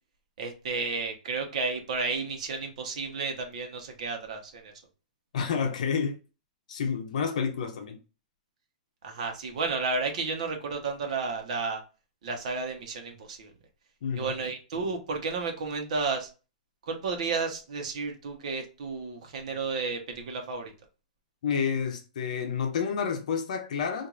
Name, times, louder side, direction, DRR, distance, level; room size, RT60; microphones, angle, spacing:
voice 1, 0.4-4.7 9.0-11.8 12.2-13.5 14.2-16.3 16.9-20.7, right 4 dB, 55° right, 1.0 m, -32 dB
voice 2, 5.3-6.2 6.7-8.0 14.0-14.3 21.4-24.1, left 6 dB, 60° left, 0.7 m, -29 dB
4.5 x 2.6 x 2.5 m
hypercardioid pair, 175°, 4 cm